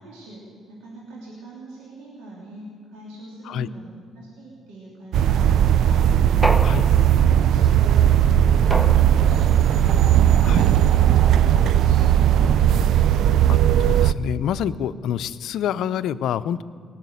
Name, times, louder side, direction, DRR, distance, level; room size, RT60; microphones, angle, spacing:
voice 1, 0.0-7.1 7.5-13.3, right 2 dB, 90° right, -5 dB, 3.1 m, -43 dB
sound 1, 5.1-14.1, right 10 dB, 70° right, 0.4 m, -17 dB
sound 2, 6.4-7.4 8.7-9.5, equal, 5° right, 0.8 m, -28 dB
voice 2, 14.0-16.6, left 9 dB, 75° left, 15 dB, 0.5 m, -27 dB
18.5 x 7.3 x 9.7 m, 2.2 s
supercardioid pair, 75°, 0 cm